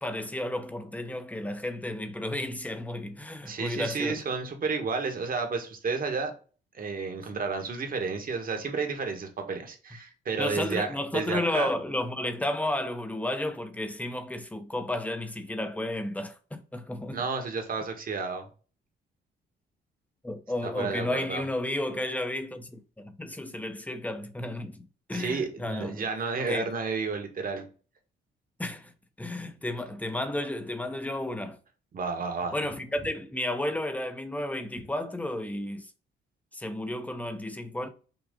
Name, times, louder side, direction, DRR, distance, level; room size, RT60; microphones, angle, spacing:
voice 1, 0.0-4.2 10.4-17.2 20.2-26.1 26.5-26.7 28.6-28.9 29.2-31.6 32.5-35.9 36.5-37.9, left 1 dB, 5° left, 0.7 m, -32 dB
voice 2, 3.4-6.3 6.7-11.8 17.1-18.5 20.6-21.4 25.1-27.7 31.9-32.5, right 4 dB, 45° right, 1.4 m, -31 dB
6.0 x 2.4 x 3.7 m
cardioid pair, 90°, 20 cm